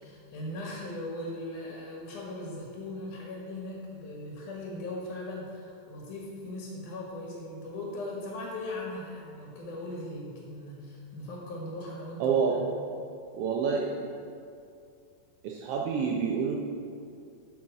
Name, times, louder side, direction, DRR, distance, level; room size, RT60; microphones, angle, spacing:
voice 1, 0.0-12.7, left 1 dB, 85° left, -2 dB, 2.9 m, -39 dB
voice 2, 12.2-12.8 13.3-14.1 15.4-16.6, right 5 dB, 75° right, -1 dB, 1.4 m, -28 dB
8.2 x 7.2 x 6.3 m, 2.4 s
omnidirectional pair, 3.5 m